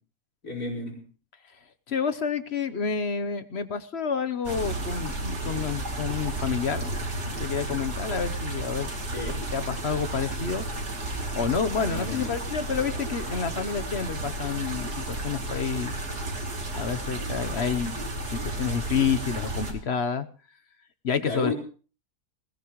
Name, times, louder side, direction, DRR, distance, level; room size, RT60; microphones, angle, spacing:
voice 1, 0.4-1.0 9.1-9.5 11.8-12.4 21.2-21.5, left 3 dB, 75° left, 5.6 m, -33 dB
voice 2, 1.9-6.9 7.4-8.9 9.5-10.7 11.3-16.0 16.7-18.0 18.3-20.3 21.0-21.5, left 6 dB, 45° left, 1.1 m, -29 dB
sound 1, 4.4-19.7, right 2 dB, 85° right, 3.3 m, -33 dB
20.5 x 17.5 x 3.1 m
omnidirectional pair, 1.7 m